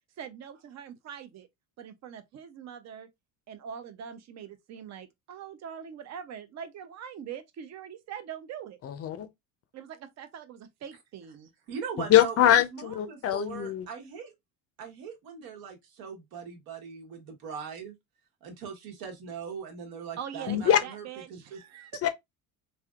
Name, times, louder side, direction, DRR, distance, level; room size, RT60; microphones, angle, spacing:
voice 1, 0.2-1.5 1.8-3.1 3.5-8.8 9.7-11.5 20.2-22.0, right 8 dB, 45° right, 0.7 m, -43 dB
voice 2, 8.8-9.3 12.1-13.9 20.5-20.8 22.0-22.1, left 11 dB, 40° left, 0.5 m, -23 dB
voice 3, 11.7-14.3 14.8-17.9 18.4-21.6, right 6 dB, 75° right, 1.3 m, -40 dB
3.3 x 2.6 x 2.4 m
cardioid pair, 110°, 37 cm